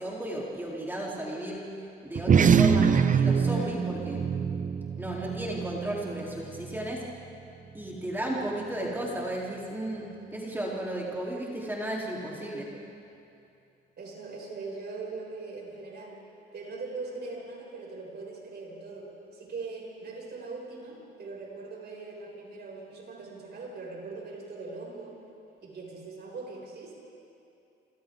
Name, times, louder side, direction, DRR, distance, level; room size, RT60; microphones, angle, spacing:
voice 1, 0.0-1.6 2.0-4.3 5.0-7.0 7.7-12.7, right 1 dB, 10° right, -5 dB, 4.0 m, -34 dB
sound 1, 2.1-6.9, right 6 dB, 40° right, 0.9 m, -24 dB
voice 2, 14.0-16.2 16.5-25.2 25.6-26.9, right 3 dB, 55° right, -2 dB, 7.1 m, -41 dB
29.0 x 26.5 x 4.0 m, 2.6 s
cardioid pair, 90°, 20 cm